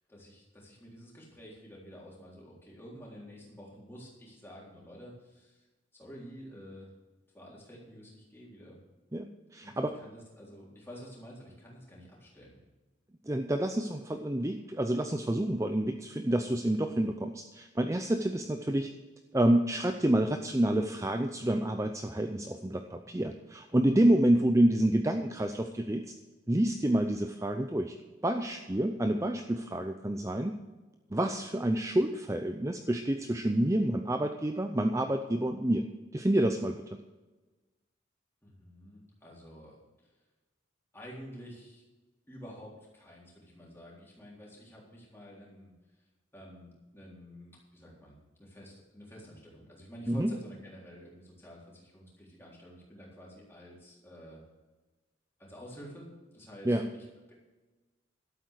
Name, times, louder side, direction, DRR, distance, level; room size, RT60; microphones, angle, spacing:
voice 1, 0.1-5.7 6.0-6.9 7.3-8.8 9.6-12.6 38.4-39.8 40.9-41.8 42.3-45.7 46.3-54.4 55.4-57.3, equal, 10° left, -4 dB, 3.7 m, -50 dB
voice 2, 9.1-10.0 13.3-18.9 19.3-26.1 26.5-27.9 28.2-30.5 31.1-35.9 36.1-37.0 50.1-50.3 56.7-56.9, right 1 dB, 15° right, 6 dB, 0.5 m, -28 dB
12.5 x 8.5 x 6.4 m, 1.2 s
head